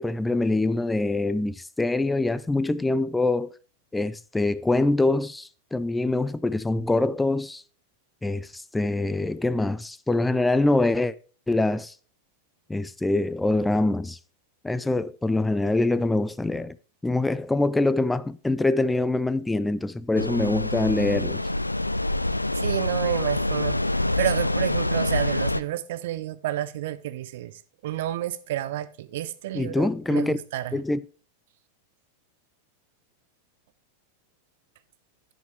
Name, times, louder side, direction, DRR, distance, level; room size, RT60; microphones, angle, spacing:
voice 1, 0.0-3.5 3.9-7.6 8.2-11.1 11.5-11.9 12.7-14.2 14.6-16.8 17.0-21.4 29.5-30.4 30.7-31.0, left 2 dB, 5° left, 0.4 m, -24 dB
sound 1, 20.2-25.6, left 1 dB, 85° left, 0.4 m, -26 dB
voice 2, 22.5-30.8, right 13 dB, 55° right, 0.8 m, -30 dB
10.5 x 8.2 x 3.3 m
figure-of-eight pair, 90°, 0 cm